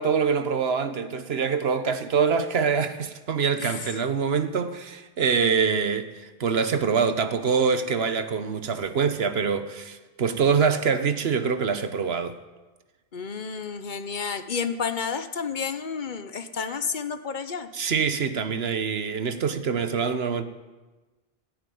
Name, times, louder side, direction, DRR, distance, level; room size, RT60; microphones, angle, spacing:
voice 1, 0.0-12.4 17.7-20.4, right 6 dB, 75° right, 1.2 m, -25 dB
voice 2, 3.6-4.0 13.1-17.7, left 6 dB, 50° left, 1.0 m, -31 dB
15.0 x 9.5 x 9.3 m
omnidirectional pair, 1.1 m